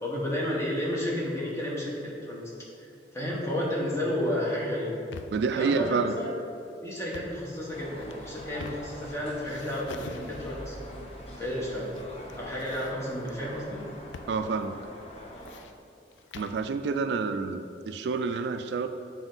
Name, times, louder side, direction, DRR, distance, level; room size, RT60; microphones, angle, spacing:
voice 1, 0.0-2.4 2.8-5.0 5.5-6.3 6.8-10.7 11.4-11.9 12.3-13.8, left 1 dB, 15° left, -5 dB, 1.3 m, -32 dB
sound 1, 4.7-5.5 7.0-7.4 8.0-9.1 9.4-10.7 11.5-12.0 12.3-13.3 14.1-14.4 14.6-14.7 15.2-16.6, left 4 dB, 90° left, 0.4 m, -46 dB
voice 2, 5.3-6.1 14.3-14.7 16.3-18.9, right 4 dB, 70° right, 9 dB, 0.3 m, -28 dB
sound 2, 7.7-15.6, equal, 35° left, 0.8 m, -44 dB
8.0 x 4.4 x 3.9 m, 2.5 s
head